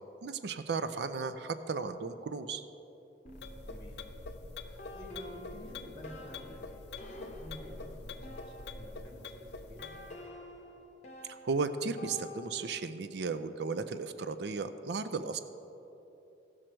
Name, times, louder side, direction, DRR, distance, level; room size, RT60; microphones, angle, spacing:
voice 1, 0.2-2.6 11.3-15.4, right 4 dB, 70° right, 11 dB, 0.4 m, -35 dB
sound 1, 3.2-9.2 9.8-13.0, left 1 dB, 40° left, 1.0 m, -50 dB
sound 2, 3.3-10.2, left 3 dB, 65° left, 0.7 m, -45 dB
voice 2, 3.7-4.1 4.6-9.9, equal, 25° left, -2 dB, 1.9 m, -51 dB
16.0 x 6.4 x 4.4 m, 3.0 s
head